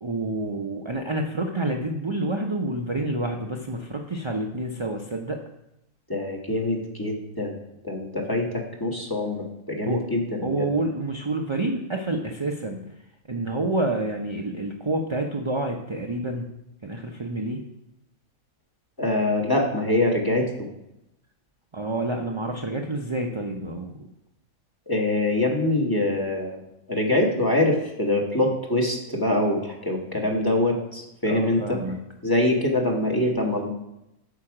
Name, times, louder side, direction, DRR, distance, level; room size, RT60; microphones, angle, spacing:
voice 1, 0.0-5.4 9.8-10.0 10.4-12.8 13.3-16.5 16.8-17.6 21.7-24.1 31.3-32.0, right 2 dB, 35° right, 1 dB, 0.4 m, -28 dB
voice 2, 6.1-7.6 7.8-10.7 19.0-20.7 24.9-26.6 26.9-31.8 32.2-33.7, left 1 dB, 15° left, 0 dB, 1.5 m, -24 dB
8.7 x 7.0 x 4.9 m, 0.86 s
omnidirectional pair, 1.6 m